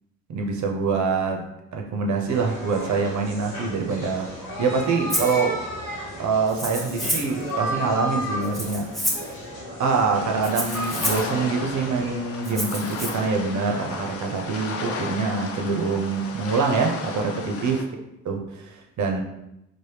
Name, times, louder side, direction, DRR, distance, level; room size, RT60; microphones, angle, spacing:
voice 1, 0.3-1.5 1.7-4.3 4.6-5.6 6.2-9.2 9.8-17.8 18.3-19.2, right 4 dB, 50° right, 2 dB, 0.6 m, -25 dB
sound 1, 2.3-12.2, equal, 80° left, 0.9 m, -34 dB
Rattle (instrument), 5.1-5.4 6.5-7.4 8.4-9.3 10.4-11.3 12.4-13.1, equal, ahead, 0.7 m, -29 dB
sound 2, 10.1-17.8, left 4 dB, 40° left, 0.5 m, -34 dB
3.1 x 2.1 x 3.3 m, 0.86 s
hypercardioid pair, 45°, 37 cm